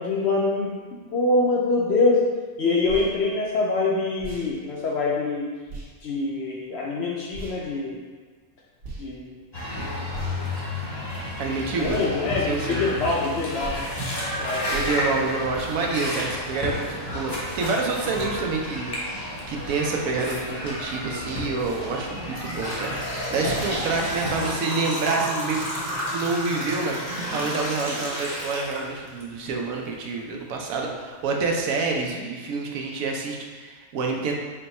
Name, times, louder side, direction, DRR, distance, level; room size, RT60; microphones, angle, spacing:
voice 1, 0.0-2.2 2.6-5.5 6.0-8.0 9.0-9.3 11.8-13.9 14.4-14.8 16.0-16.1, left 3 dB, 65° left, -4 dB, 0.7 m, -24 dB
sound 1, 2.8-3.1 4.2-4.5 5.7-5.9 7.3-7.6 8.8-9.0 10.1-10.5 11.8-12.0 13.6-13.9 14.7-15.0, right 3 dB, 60° right, 1.3 m, -37 dB
sound 2, 9.5-24.5, left 1 dB, 25° left, 0.6 m, -32 dB
voice 2, 11.4-12.0 12.4-12.8 14.7-18.9 19.5-34.3, right 4 dB, 80° right, 1 dB, 1.0 m, -28 dB
sound 3, 22.1-29.2 29.7-29.8 30.6-30.7 31.2-31.3 31.8-32.0, equal, 15° right, 0.9 m, -31 dB
4.3 x 2.2 x 4.0 m, 1.4 s
omnidirectional pair, 1.5 m